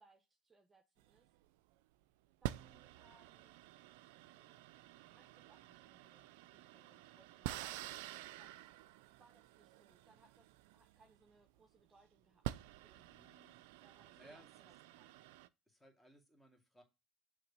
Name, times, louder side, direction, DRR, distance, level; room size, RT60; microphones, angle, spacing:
voice 1, 0.0-1.3 2.4-3.6 4.3-4.6 5.0-8.0 8.4-8.6 9.2-13.2 13.8-15.2, right 3 dB, 25° right, 1.0 m, -70 dB
sound 1, 1.0-1.7 2.4-11.6 12.1-12.2 12.4-15.5, right 14 dB, 75° right, 0.4 m, -49 dB
voice 2, 13.1-13.6 14.1-14.5 15.7-16.8, equal, 10° left, 2.2 m, -63 dB
6.5 x 3.2 x 5.3 m
hypercardioid pair, 75°, 0 cm